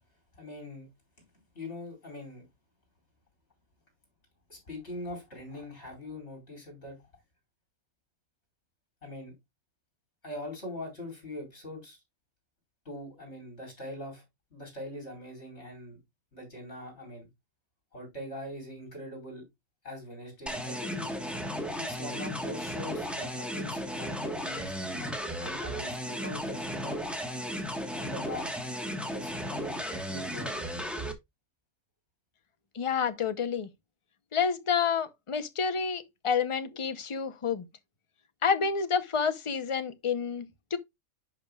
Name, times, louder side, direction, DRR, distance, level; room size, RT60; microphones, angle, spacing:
voice 1, 0.4-0.9 1.5-2.5 4.5-7.0 9.0-9.3 10.2-12.0 12.8-14.2 14.5-16.0 16.3-17.3 17.9-19.4 19.8-21.1 21.8-25.1 25.4-27.0 27.9-28.5 29.1-30.6, left 1 dB, 50° left, 4.8 m, -42 dB
sound 1, 20.5-31.1, equal, ahead, 1.1 m, -35 dB
voice 2, 32.7-33.7 34.3-37.7 38.4-40.8, left 6 dB, 30° left, 0.6 m, -29 dB
10.5 x 5.2 x 2.3 m
omnidirectional pair, 1.4 m